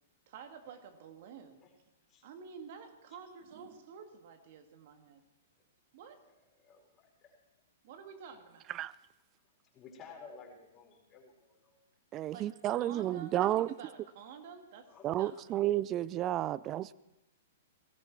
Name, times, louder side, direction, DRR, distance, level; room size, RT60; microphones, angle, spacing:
voice 1, 0.3-1.6 2.2-5.2 5.9-6.2 7.8-8.7 12.3-15.3, right 6 dB, 55° right, 6 dB, 2.0 m, -50 dB
voice 2, 6.3-7.4 8.3-8.4 9.7-11.8 14.9-15.7 16.5-16.7, left 5 dB, 30° left, -1 dB, 4.3 m, -55 dB
voice 3, 12.1-13.7 15.0-16.9, right 13 dB, 30° right, 21 dB, 0.4 m, -31 dB
18.0 x 15.5 x 4.7 m, 0.97 s
hypercardioid pair, 125°, 0 cm